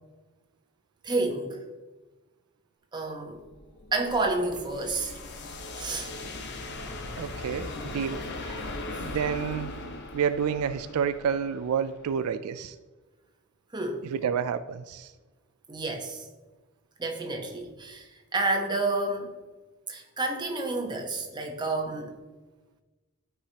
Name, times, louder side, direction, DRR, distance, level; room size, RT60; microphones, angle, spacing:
voice 1, 1.0-1.6 2.9-3.4 3.9-5.1 5.8-6.1 8.4-8.8 13.7-14.1 15.7-16.3 17.0-19.4 19.9-22.2, right 2 dB, 20° right, 2 dB, 1.0 m, -30 dB
sound 1, 3.4-12.3, left 2 dB, 50° left, 0.8 m, -39 dB
voice 2, 7.2-8.2 9.0-9.8 10.1-12.8 14.1-15.1, right 7 dB, 80° right, 12 dB, 0.3 m, -29 dB
12.5 x 4.8 x 2.8 m, 1.2 s
head